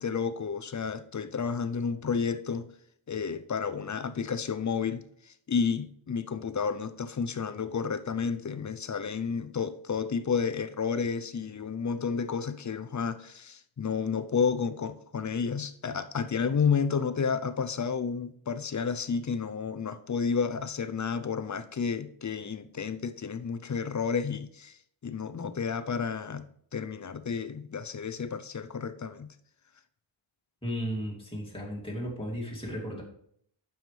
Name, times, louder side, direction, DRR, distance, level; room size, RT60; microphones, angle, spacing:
voice 1, 0.0-2.7 3.1-29.3, left 6 dB, 40° left, 0.6 m, -31 dB
voice 2, 30.6-33.0, equal, 10° left, 2.5 m, -35 dB
9.2 x 7.0 x 3.2 m
wide cardioid pair, 140°, 46 cm